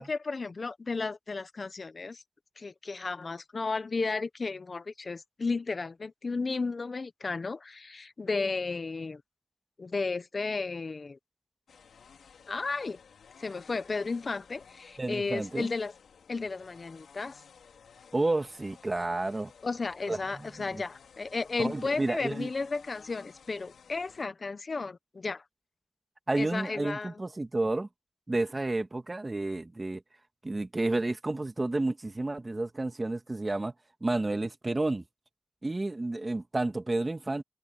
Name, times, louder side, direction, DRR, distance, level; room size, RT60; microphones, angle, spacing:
voice 1, 0.0-2.2 2.6-9.2 9.8-11.2 12.5-13.0 13.4-15.9 16.3-17.4 19.6-25.4 26.3-27.2, left 4 dB, 50° left, 1.1 m, -33 dB
sound 1, 11.7-24.2, left 6 dB, 85° left, 4.3 m, -55 dB
voice 2, 15.0-15.7 18.1-19.5 20.1-20.8 21.6-22.5 26.3-27.9 28.3-30.0 30.4-33.7 34.0-35.0 35.6-37.4, right 2 dB, 30° right, 2.0 m, -31 dB
cardioid pair, 55°, 0 cm